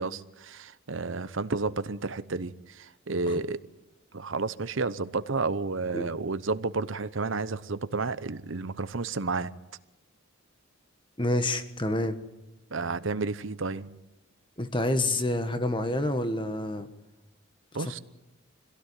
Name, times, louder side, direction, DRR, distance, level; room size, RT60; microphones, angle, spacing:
voice 1, 0.0-2.5 3.1-3.6 4.1-9.5 12.7-14.0 17.7-18.0, right 3 dB, 70° right, 0.9 m, -31 dB
voice 2, 11.2-12.2 14.6-16.9 17.8-18.0, left 1 dB, 25° left, 1.5 m, -28 dB
25.5 x 17.0 x 10.0 m
head